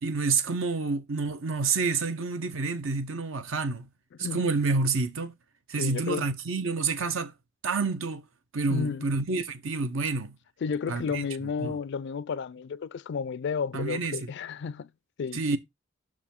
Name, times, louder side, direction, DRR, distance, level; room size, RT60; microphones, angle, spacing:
voice 1, 0.0-3.9 4.3-5.3 5.7-7.3 7.6-8.2 8.5-10.3 10.9-11.3 11.6-11.8 13.7-14.3 15.3-15.6, right 4 dB, 70° right, 0.7 m, -28 dB
voice 2, 5.8-6.3 8.7-9.1 10.6-14.9 15.2-15.4, left 5 dB, 60° left, 0.4 m, -32 dB
6.1 x 4.9 x 3.6 m
head